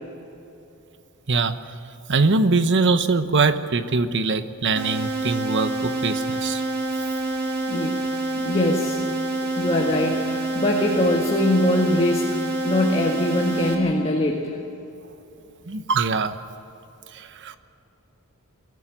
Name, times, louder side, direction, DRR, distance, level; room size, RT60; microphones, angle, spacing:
voice 1, 2.1-6.6 15.7-16.3 17.1-17.6, right 3 dB, 55° right, 10 dB, 1.0 m, -22 dB
sound 1, 4.8-13.8, right 2 dB, 80° right, 3.6 m, -27 dB
voice 2, 7.7-8.1 8.4-9.0 9.6-12.3 12.6-14.5, left 1 dB, 25° left, 0 dB, 1.7 m, -22 dB
22.0 x 14.5 x 9.2 m, 2.9 s
head